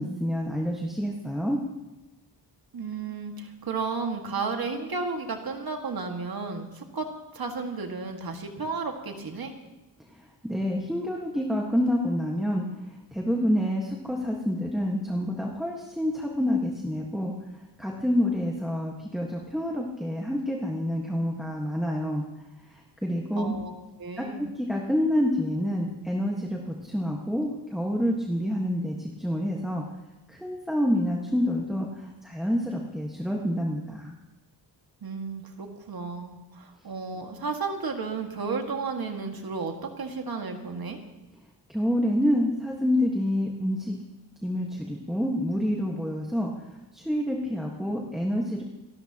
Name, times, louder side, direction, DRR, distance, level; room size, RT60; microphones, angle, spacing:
voice 1, 0.0-1.6 10.4-12.6 13.1-17.3 17.8-22.2 22.7-23.5 24.2-29.8 30.3-34.2 41.7-43.9 44.4-48.6, equal, ahead, -1 dB, 1.5 m, -28 dB
voice 2, 2.7-7.1 7.3-9.5 23.4-23.7 24.0-24.5 35.0-41.0, right 4 dB, 60° right, 3 dB, 1.9 m, -33 dB
27.5 x 13.0 x 2.9 m, 1.1 s
wide cardioid pair, 140°, 41 cm